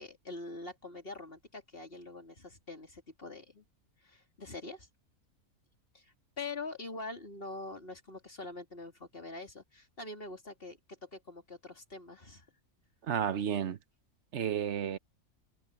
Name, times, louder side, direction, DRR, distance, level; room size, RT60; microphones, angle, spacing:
voice 1, 0.0-3.6 4.0-4.9 5.9-12.5, left 3 dB, 40° left, 2.8 m, -44 dB
voice 2, 13.1-13.8 14.3-15.0, right 8 dB, 55° right, 1.1 m, -31 dB
omnidirectional pair, 1.5 m